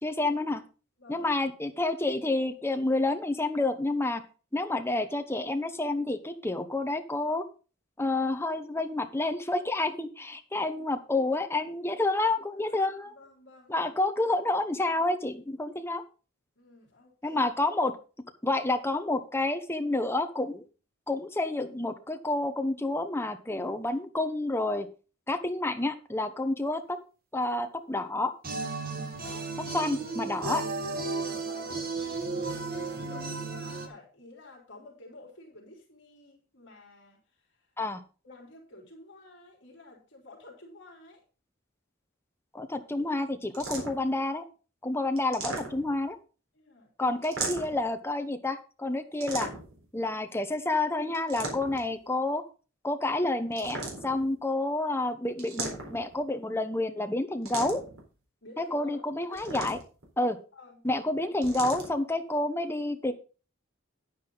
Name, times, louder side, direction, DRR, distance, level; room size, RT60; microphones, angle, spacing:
voice 1, 0.0-0.6 1.1-4.2 4.5-7.4 8.0-13.1 13.7-16.0 17.2-17.9 18.4-20.6 21.1-24.9 25.3-27.0 27.3-28.3 29.7-30.6 37.8-38.0 42.5-44.4 44.8-46.2 47.0-49.5 49.9-52.4 52.8-53.8 54.0-57.8 58.6-59.8 60.2-60.4 60.8-63.1, left 2 dB, 10° left, 7 dB, 1.0 m, -29 dB
voice 2, 1.0-1.3 12.4-13.9 16.6-17.4 29.2-29.8 30.3-37.7 38.2-41.2 46.5-47.2 58.4-59.0 59.3-59.5 60.5-60.8, left 2 dB, 60° left, -1 dB, 3.5 m, -51 dB
sound 1, 28.4-33.9, right 3 dB, 45° right, 1.7 m, -34 dB
sound 2, 43.5-44.1 45.2-46.1 47.2-47.9 49.2-49.8 51.1-51.9 53.5-54.3 55.4-56.2 57.5-58.0 59.3-60.1 61.4-61.9, right 3 dB, 85° right, 4.0 m, -36 dB
9.8 x 9.4 x 3.9 m, 0.35 s
head